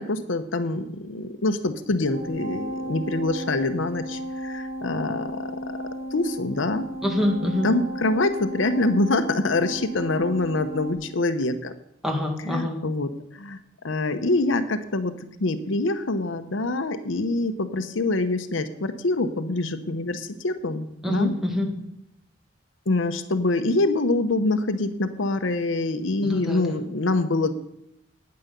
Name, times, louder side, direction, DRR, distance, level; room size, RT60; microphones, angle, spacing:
voice 1, 0.0-5.8 6.1-6.9 7.4-11.7 12.5-13.6 13.8-21.3 22.9-27.5, left 2 dB, 75° left, 10 dB, 0.8 m, -25 dB
sound 1, 2.1-10.9, equal, 30° right, 2.0 m, -34 dB
voice 2, 7.0-7.7 12.0-12.8 21.0-21.7 26.2-26.8, left 1 dB, ahead, 1 dB, 1.9 m, -25 dB
9.6 x 9.6 x 6.7 m, 0.79 s
head